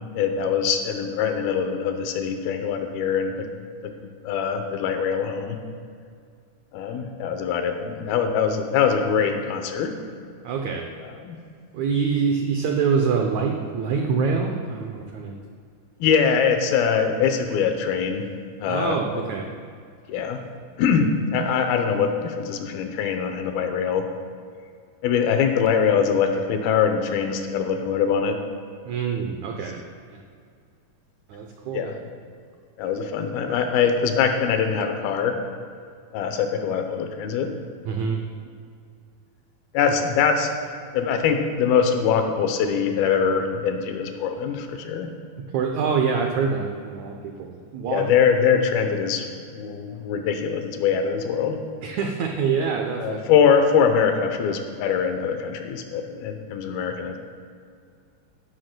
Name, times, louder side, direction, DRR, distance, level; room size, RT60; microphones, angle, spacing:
voice 1, 0.1-3.5 3.8-5.6 6.7-9.9 11.0-11.4 16.0-18.3 18.6-19.0 20.1-20.4 20.8-24.1 25.0-28.4 31.7-32.1 32.8-35.4 36.1-37.5 39.7-40.5 40.9-45.1 47.9-49.3 49.5-51.6 53.0-57.2, left 6 dB, 90° left, 6 dB, 2.7 m, -23 dB
voice 2, 10.4-10.9 11.7-15.4 18.6-19.5 28.8-29.8 30.1-30.2 31.3-31.9 37.8-38.2 45.5-48.1 51.8-53.2, right 5 dB, 85° right, 2 dB, 1.6 m, -25 dB
15.5 x 11.5 x 2.2 m, 2.2 s
omnidirectional pair, 4.2 m